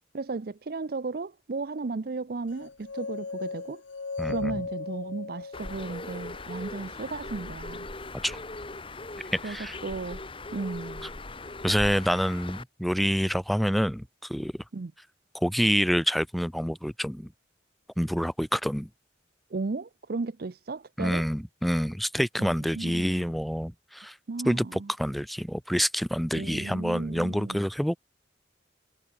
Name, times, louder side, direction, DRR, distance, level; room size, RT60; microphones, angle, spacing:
voice 1, 0.1-3.8 4.2-7.9 9.4-9.6 9.8-10.2 10.5-11.1 14.7-14.9 19.5-21.2 22.4-23.3 24.3-24.9 26.3-27.7, right 3 dB, 50° right, 0.5 m, -35 dB
sound 1, 2.6-6.7, left 4 dB, 75° left, 0.8 m, -37 dB
voice 2, 4.2-4.5 8.2-8.4 9.4-9.8 11.0-11.1 11.6-14.5 15.3-17.3 18.0-18.9 21.0-24.2 24.4-28.0, equal, ahead, 0.3 m, -27 dB
Bird, 5.5-12.6, left 2 dB, 30° left, 1.7 m, -39 dB
head